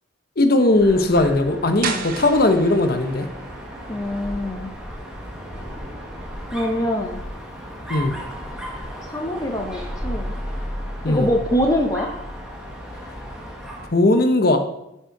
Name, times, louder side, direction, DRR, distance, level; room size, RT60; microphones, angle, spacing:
voice 1, 0.4-3.3 7.9-8.1 11.0-11.3 13.9-14.6, left 2 dB, 50° left, 7 dB, 0.9 m, -18 dB
Dog, 0.7-14.0, equal, 5° right, 1.4 m, -34 dB
sound 1, 1.8-7.5, right 5 dB, 45° right, 0.8 m, -36 dB
voice 2, 3.9-4.7 6.5-7.2 9.1-10.3 11.1-12.1, equal, 20° left, 3 dB, 0.7 m, -24 dB
10.5 x 5.6 x 4.6 m, 0.84 s
head